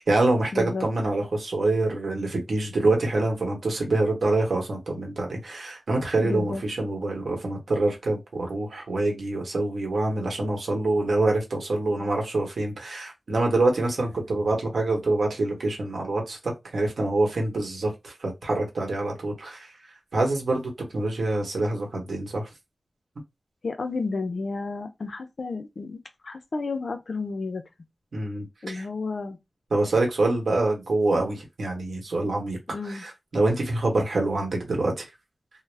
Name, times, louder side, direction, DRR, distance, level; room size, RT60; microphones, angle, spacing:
voice 1, 0.0-16.4 16.7-19.7 20.1-22.5 28.1-28.9 29.7-32.6 32.8-35.0, right 2 dB, 80° right, 1.0 m, -25 dB
voice 2, 0.5-0.9 6.2-6.6 23.6-27.6 28.6-29.4 32.7-33.0, left 3 dB, 70° left, 0.5 m, -32 dB
2.3 x 2.1 x 3.2 m
wide cardioid pair, 80°, 0 cm